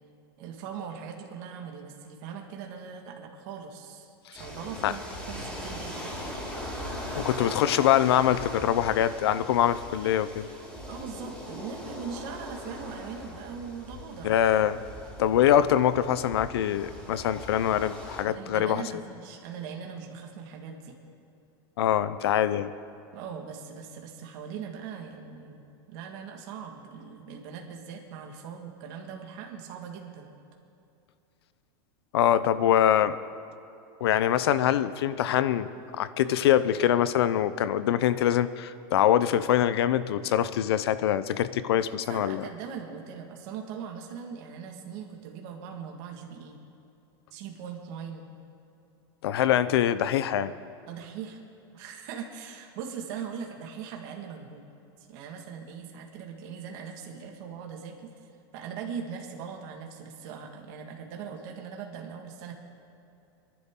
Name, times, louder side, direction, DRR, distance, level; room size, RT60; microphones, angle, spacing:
voice 1, 0.4-6.2 10.9-14.4 18.3-21.0 23.1-25.6 25.9-30.3 41.9-46.6 47.3-48.3 50.9-51.4 51.7-54.7 55.1-58.1 58.5-62.5, right 7 dB, 50° right, 1 dB, 1.9 m, -40 dB
sound 1, 4.4-18.2, equal, 10° left, 3.6 m, -40 dB
voice 2, 7.2-10.5 14.2-14.8 15.2-18.8 21.8-22.7 32.1-33.2 34.0-42.4 49.2-50.5, left 11 dB, 85° left, 14 dB, 0.7 m, -24 dB
24.5 x 11.5 x 3.8 m, 2.8 s
supercardioid pair, 155°, 13 cm